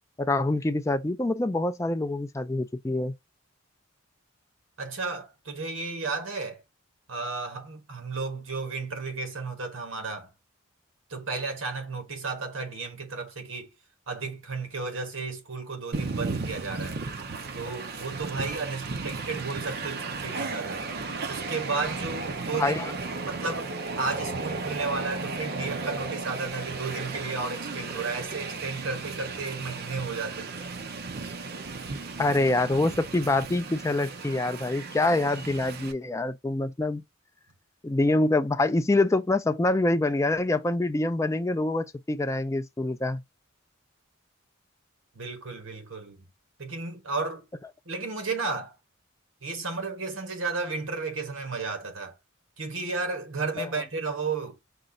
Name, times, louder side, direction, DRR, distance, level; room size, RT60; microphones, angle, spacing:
voice 1, 0.2-3.1 22.6-22.9 32.2-37.0 37.8-43.2, left 2 dB, 15° left, 0.3 m, -25 dB
voice 2, 4.8-6.6 7.1-10.3 11.1-13.7 14.1-17.0 17.5-20.9 21.3-22.8 23.2-30.7 45.1-46.2 46.6-47.4 47.8-48.8 49.4-52.1 52.6-54.6, right 4 dB, 70° right, 1.3 m, -33 dB
Train, 15.9-35.9, right 3 dB, 50° right, 0.6 m, -35 dB
5.2 x 2.4 x 3.8 m
head